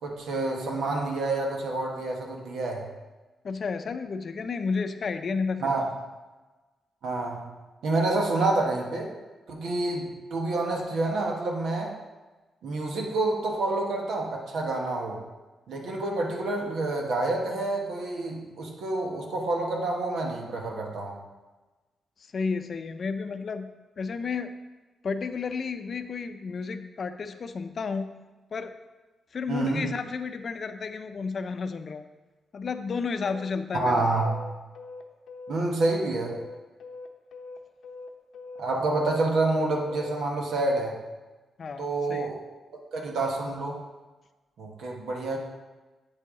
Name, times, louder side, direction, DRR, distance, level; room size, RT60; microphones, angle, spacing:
voice 1, 0.0-2.9 5.6-5.9 7.0-7.5 7.8-9.1 9.5-11.9 12.6-15.2 15.7-21.2 29.5-29.9 33.7-34.3 35.5-36.4 38.6-41.0 41.8-42.3 42.9-43.8 44.6-45.4, right 2 dB, 80° right, 0 dB, 1.3 m, -28 dB
voice 2, 3.4-5.9 22.3-23.7 24.0-24.5 25.0-28.1 28.5-28.7 29.3-32.1 32.5-34.0 41.6-42.3, left 5 dB, 50° left, 9 dB, 0.5 m, -32 dB
sound 1, 33.2-40.2, left 3 dB, 80° left, 0.7 m, -42 dB
8.0 x 6.6 x 3.8 m, 1.2 s
cardioid pair, 110°, 0 cm